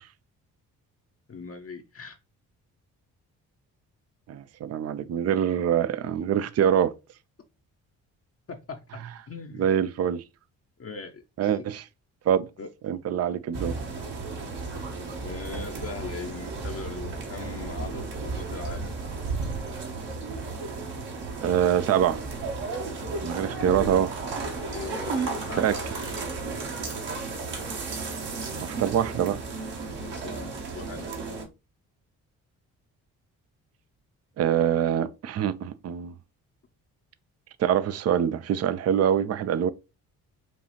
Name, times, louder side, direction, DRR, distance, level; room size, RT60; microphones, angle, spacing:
voice 1, 1.3-2.2 8.5-8.8 9.3-9.7 10.8-11.6 12.6-12.7 15.2-18.9 23.5-23.7 24.5-26.3 30.0-31.0, left 4 dB, 30° left, 0.7 m, -40 dB
voice 2, 4.3-6.9 9.6-10.2 11.4-11.8 12.3-12.4 12.8-13.8 21.4-22.2 23.2-24.1 25.6-25.8 28.6-29.4 34.4-36.1 37.6-39.7, right 9 dB, 35° right, 0.4 m, -24 dB
sound 1, 13.5-31.4, right 4 dB, 65° right, 1.3 m, -34 dB
5.2 x 2.3 x 3.1 m
hypercardioid pair, 40°, 44 cm